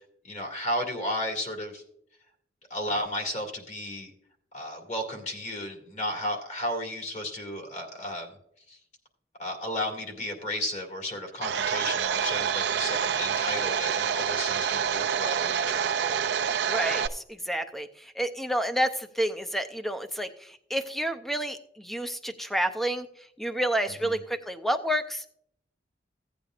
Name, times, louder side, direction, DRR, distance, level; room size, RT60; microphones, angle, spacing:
voice 1, 0.2-1.8 2.7-4.1 4.5-8.3 8.7-8.8 9.4-16.2 24.0-24.2, left 1 dB, 40° left, 2 dB, 2.1 m, -33 dB
Domestic sounds home sounds, 11.4-17.1, right 8 dB, 70° right, 0.5 m, -27 dB
voice 2, 16.7-23.1 23.4-25.3, right 1 dB, ahead, 9 dB, 0.5 m, -30 dB
16.0 x 8.6 x 2.5 m, 0.69 s
head